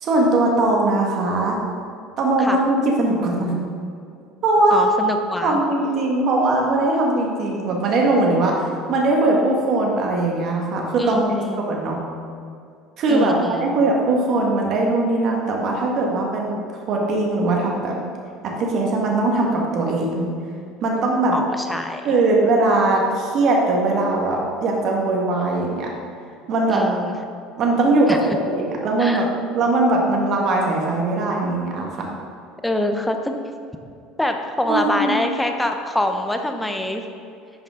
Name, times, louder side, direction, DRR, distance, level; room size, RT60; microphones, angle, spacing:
voice 1, 0.0-1.6 2.2-3.5 4.4-4.9 5.4-11.2 11.6-12.0 13.0-13.3 13.6-16.6 16.9-18.0 18.4-20.3 20.8-21.3 22.0-25.9 26.5-26.8 27.6-29.3 29.5-32.1 34.7-35.1, right 2 dB, 55° right, -1 dB, 1.7 m, -20 dB
voice 2, 4.7-5.6 11.0-11.6 13.1-13.7 21.3-22.0 26.7-27.2 28.1-28.2 29.0-29.3 32.6-33.4 34.2-37.0, left 1 dB, 10° left, 5 dB, 0.9 m, -24 dB
10.5 x 5.3 x 3.8 m, 2.4 s
hypercardioid pair, 75°, 0 cm